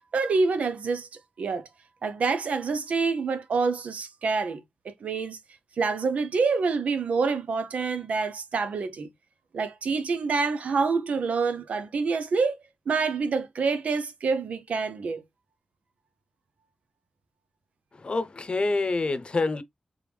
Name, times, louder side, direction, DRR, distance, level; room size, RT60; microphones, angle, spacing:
voice 1, 0.1-1.1 1.4-1.7 2.0-5.4 5.8-9.1 9.5-12.6 12.9-15.2, right 4 dB, 80° right, 0.7 m, -27 dB
voice 2, 17.9-19.6, left 3 dB, 50° left, 0.7 m, -27 dB
3.7 x 3.4 x 3.2 m
cardioid pair, 50°, 2 cm